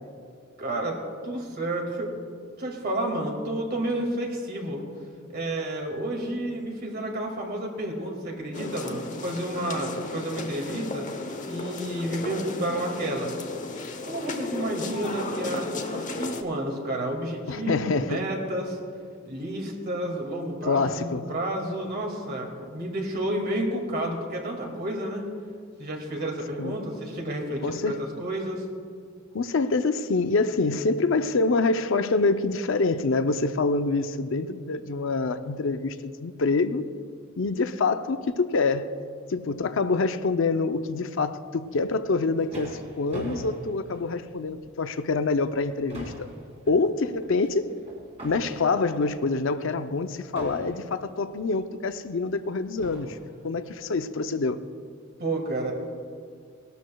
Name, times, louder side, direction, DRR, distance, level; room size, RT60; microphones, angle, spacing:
voice 1, 0.6-1.0 1.2-2.1 2.6-4.8 5.3-11.1 11.4-13.3 14.0-18.8 19.3-25.3 25.8-28.6 55.2-55.7, right 1 dB, 50° right, 1 dB, 2.1 m, -30 dB
sound 1, 8.5-16.4, left 2 dB, 40° left, 0.8 m, -34 dB
voice 2, 17.5-18.2 20.7-21.3 26.6-26.8 27.6-28.0 29.3-36.8 37.4-38.9 39.3-46.3 46.7-47.7 48.2-53.2 53.4-54.6, left 3 dB, 70° left, 10 dB, 0.6 m, -26 dB
sound 2, 42.0-44.6 45.1-45.3 45.6-49.1 50.4-51.1 52.0-52.1 52.8-53.3, right 1 dB, 35° right, 2.7 m, -40 dB
19.0 x 12.5 x 2.3 m, 2.2 s
head